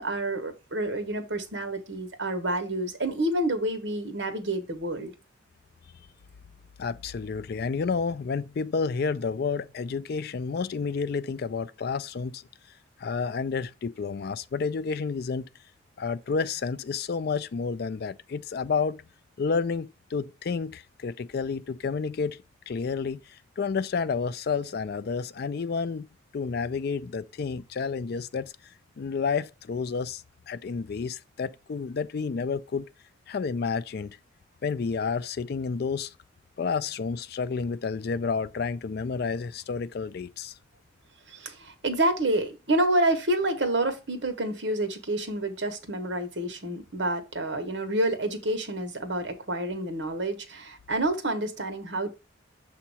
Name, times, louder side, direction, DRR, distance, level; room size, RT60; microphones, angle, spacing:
voice 1, 0.0-5.1 41.3-52.1, right 1 dB, 60° right, 1.3 m, -28 dB
voice 2, 6.8-12.4 13.0-15.4 16.0-19.0 19.4-26.1 26.3-28.5 29.0-32.9 33.3-34.2 34.6-36.1 36.6-40.5, left 5 dB, 50° left, 0.3 m, -30 dB
7.1 x 2.9 x 5.5 m
head